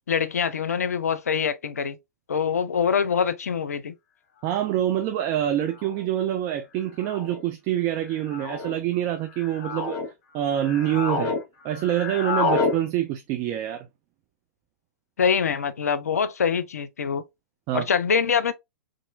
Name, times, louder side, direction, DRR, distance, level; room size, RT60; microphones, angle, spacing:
voice 1, 0.1-2.0 2.3-3.9 15.2-17.2 17.7-18.5, left 6 dB, 75° left, 0.5 m, -24 dB
voice 2, 4.4-10.0 10.3-11.3 11.6-13.9 17.7-17.9, right 11 dB, 35° right, 0.4 m, -26 dB
sound 1, 4.7-4.8 5.8-6.1 7.0-7.4 8.3-8.7 9.3-10.1 10.5-11.4 11.7-12.8, left 4 dB, 40° left, 1.1 m, -28 dB
4.1 x 2.6 x 2.4 m
figure-of-eight pair, 105°, 8 cm